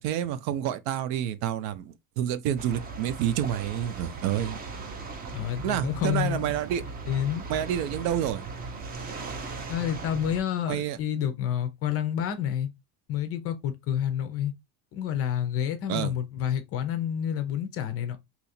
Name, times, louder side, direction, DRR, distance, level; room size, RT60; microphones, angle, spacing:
voice 1, 0.0-4.6 5.6-6.8 7.5-8.5 10.7-11.0 15.9-16.1, right 10 dB, 70° right, 0.6 m, -29 dB
sound 1, 2.5-10.4, right 4 dB, 20° right, 0.5 m, -38 dB
voice 2, 5.3-6.4 7.1-7.4 9.7-12.7 13.1-14.5 14.9-18.2, left 10 dB, 35° left, 0.5 m, -29 dB
2.9 x 2.4 x 4.1 m
cardioid pair, 155°, 44 cm